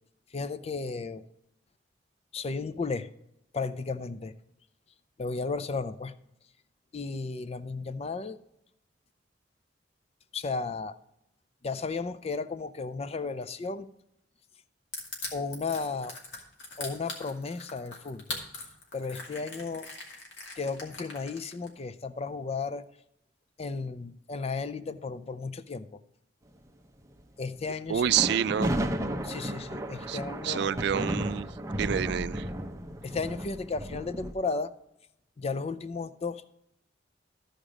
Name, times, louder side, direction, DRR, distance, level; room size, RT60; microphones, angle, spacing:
voice 1, 0.3-1.2 2.3-3.1 3.5-4.3 5.2-6.1 6.9-8.4 10.3-10.9 11.6-13.9 15.3-16.1 16.8-18.4 18.9-19.9 20.6-22.8 23.6-26.0 27.4-28.1 29.2-31.0 33.0-34.7 35.4-36.5, left 4 dB, 35° left, 14 dB, 0.5 m, -34 dB
Crushing, 14.9-21.7, left 3 dB, 85° left, 2.3 m, -40 dB
voice 2, 27.9-28.7 30.1-30.2 30.4-31.5 31.8-32.5, right 9 dB, 65° right, 17 dB, 0.3 m, -27 dB
sound 1, 28.0-34.3, right 1 dB, 15° right, 0.7 m, -33 dB
13.5 x 5.1 x 4.9 m, 0.79 s
head